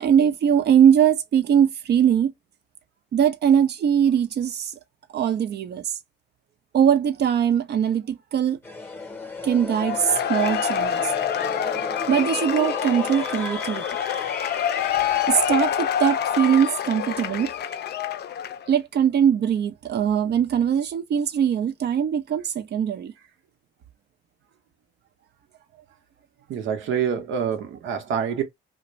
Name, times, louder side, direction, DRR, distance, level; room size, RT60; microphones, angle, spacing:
voice 1, 0.0-2.3 3.1-4.8 5.1-5.9 6.7-8.6 9.4-11.1 12.1-13.8 15.3-17.5 18.7-23.1, right 8 dB, 55° right, 0.5 m, -21 dB
sound 1, 8.6-15.3, left 2 dB, 10° left, 0.8 m, -35 dB
Cheering / Applause / Crowd, 9.8-18.7, left 9 dB, 55° left, 0.4 m, -26 dB
voice 2, 26.5-28.4, right 7 dB, 80° right, 0.8 m, -26 dB
2.5 x 2.1 x 3.0 m
cardioid pair, 90°, 20 cm